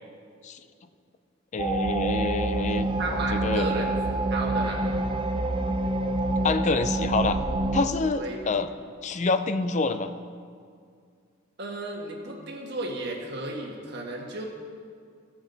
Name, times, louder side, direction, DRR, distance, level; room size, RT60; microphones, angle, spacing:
voice 1, 1.5-3.7 6.4-7.4 7.7-8.7 9.0-10.1, left 3 dB, 35° left, 10 dB, 0.4 m, -27 dB
sound 1, 1.6-7.8, right 2 dB, 25° right, 0.5 m, -27 dB
voice 2, 3.0-3.9 4.3-4.8 8.1-8.4 11.6-14.5, right 2 dB, 55° right, 0 dB, 1.5 m, -33 dB
16.0 x 6.1 x 4.0 m, 2.2 s
head